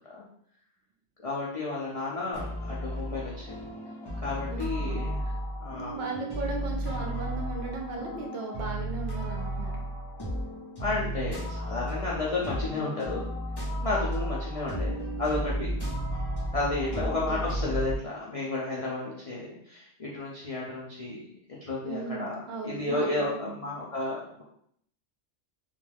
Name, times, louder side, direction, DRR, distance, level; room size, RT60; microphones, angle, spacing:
voice 1, 1.2-3.5 4.2-5.3 5.6-5.9 10.8-13.2 13.8-15.7 16.5-21.3 21.6-24.4, left 2 dB, 60° left, -5 dB, 0.3 m, -32 dB
sound 1, 2.3-18.0, right 1 dB, 25° left, 0.6 m, -33 dB
voice 2, 4.4-5.0 5.9-9.9 16.9-17.4 21.8-23.6, right 3 dB, 65° right, 0 dB, 0.7 m, -37 dB
2.3 x 2.2 x 3.3 m, 0.67 s
omnidirectional pair, 1.2 m